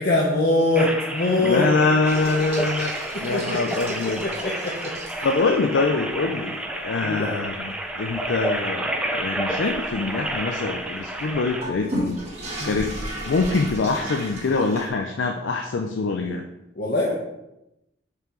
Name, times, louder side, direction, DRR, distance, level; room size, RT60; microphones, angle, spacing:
voice 1, 0.0-1.6 3.1-3.8 4.2-5.3 7.0-7.4 12.6-12.8 16.8-17.1, left 2 dB, 50° left, -3 dB, 0.9 m, -23 dB
sound 1, 0.8-11.6, right 1 dB, 5° right, 0.4 m, -30 dB
voice 2, 1.4-3.0 3.2-4.2 5.2-12.2 12.6-13.0 13.2-16.4, left 3 dB, 85° left, 4 dB, 0.5 m, -24 dB
sound 2, 2.0-5.6 6.0-6.2 6.6-6.7 7.2-14.9, right 1 dB, 35° right, 1.7 m, -35 dB
5.7 x 4.7 x 3.8 m, 0.90 s
head